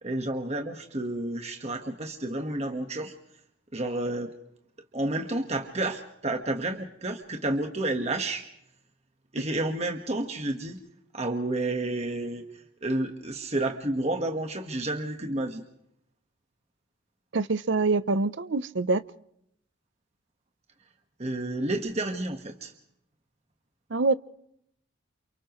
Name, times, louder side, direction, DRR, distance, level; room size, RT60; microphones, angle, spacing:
voice 1, 0.0-3.1 3.7-4.3 4.9-8.5 9.3-10.8 11.1-15.6 21.2-22.7, right 2 dB, 35° right, 4 dB, 1.6 m, -30 dB
voice 2, 17.3-19.0 23.9-24.1, right 3 dB, 70° right, 15 dB, 0.7 m, -25 dB
29.0 x 29.0 x 3.2 m, 0.74 s
head